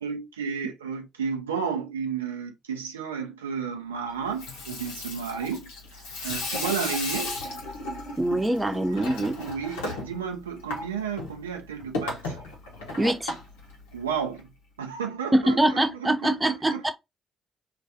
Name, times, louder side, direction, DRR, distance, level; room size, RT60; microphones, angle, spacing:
voice 1, 0.0-7.4 9.4-12.4 13.9-14.5 14.8-16.4 16.7-16.9, right 6 dB, 90° right, 0.4 m, -32 dB
Water tap faucet / Sink (filling or washing), 4.2-14.4, left 2 dB, 80° left, 0.7 m, -35 dB
voice 2, 8.2-9.3 13.0-13.3 15.3-16.9, right 1 dB, 15° right, 0.6 m, -23 dB
2.3 x 2.2 x 2.7 m
hypercardioid pair, 40°, 0 cm